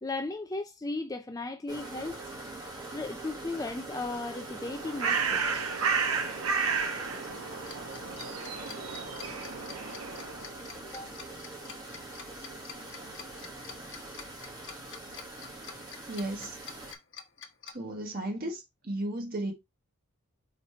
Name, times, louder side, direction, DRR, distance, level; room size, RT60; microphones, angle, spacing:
voice 1, 0.0-2.3 2.9-5.4 10.8-11.2, left 2 dB, 15° left, 0.4 m, -36 dB
sound 1, 1.7-16.9, right 2 dB, 20° right, 1.7 m, -43 dB
Bird, 4.5-10.5, right 5 dB, 80° right, 1.2 m, -32 dB
Tick-tock, 7.7-17.7, left 7 dB, 55° left, 1.1 m, -46 dB
voice 2, 16.1-16.6 17.6-19.5, right 1 dB, 40° right, 1.4 m, -35 dB
5.2 x 4.2 x 4.4 m
head